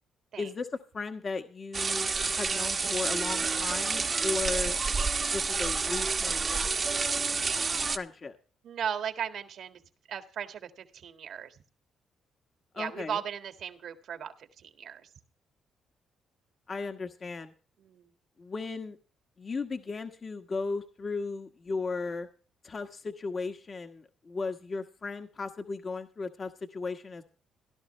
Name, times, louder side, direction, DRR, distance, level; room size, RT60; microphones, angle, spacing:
voice 1, 0.4-0.7 0.9-2.1 2.4-4.8 5.3-6.4 7.9-8.3 12.7-13.2 16.7-17.5 18.4-19.0 19.4-22.3 22.6-27.2, left 4 dB, 40° left, 6 dB, 1.3 m, -36 dB
sound 1, 1.7-8.0, right 4 dB, 35° right, 1.1 m, -29 dB
voice 2, 8.6-9.8 10.1-11.6 12.7-15.1 17.8-18.1, right 8 dB, 70° right, 7 dB, 1.8 m, -37 dB
17.0 x 11.5 x 3.2 m, 0.38 s
cardioid pair, 90°, 0 cm